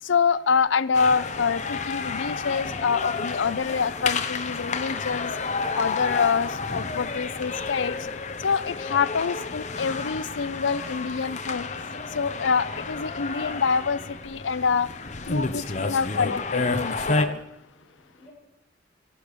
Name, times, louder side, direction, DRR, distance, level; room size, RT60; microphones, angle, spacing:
voice 1, 0.0-5.3 5.7-8.0 8.4-11.7 12.1-14.9 15.2-17.4, left 5 dB, 85° left, 16 dB, 0.5 m, -26 dB
sound 1, 0.9-17.2, left 4 dB, 40° left, 1.0 m, -30 dB
voice 2, 17.6-18.3, left 1 dB, 5° left, -8 dB, 7.4 m, -57 dB
15.5 x 11.5 x 6.9 m, 0.94 s
head